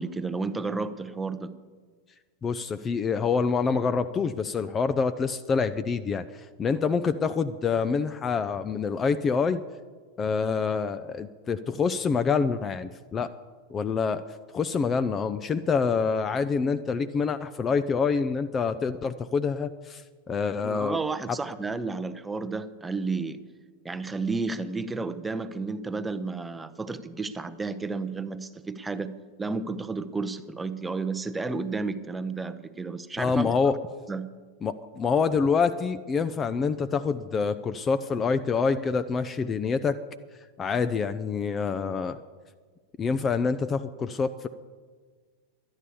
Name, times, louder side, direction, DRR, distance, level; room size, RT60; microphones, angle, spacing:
voice 1, 0.0-1.5 20.6-23.4 23.8-33.5 34.1-34.3, right 3 dB, 10° right, 12 dB, 0.7 m, -32 dB
voice 2, 2.4-9.6 10.2-13.3 13.7-14.2 14.5-21.0 21.3-21.4 33.2-33.8 34.6-40.0 40.6-42.2 43.0-44.5, left 5 dB, 20° left, 10 dB, 0.5 m, -26 dB
12.0 x 9.7 x 6.9 m, 1.5 s
figure-of-eight pair, 90°, 0 cm